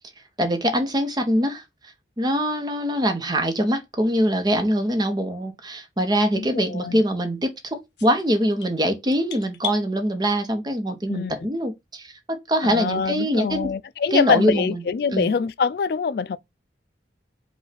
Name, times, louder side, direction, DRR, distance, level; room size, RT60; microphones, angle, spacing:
voice 1, 0.4-13.7 14.1-14.8 15.1-15.3, equal, 25° right, 0.9 m, -23 dB
voice 2, 6.3-7.0 11.1-11.3 12.6-16.4, left 5 dB, 60° left, 0.3 m, -24 dB
sound 1, 8.0-9.8, left 9 dB, 75° left, 0.9 m, -36 dB
5.2 x 2.4 x 4.0 m
head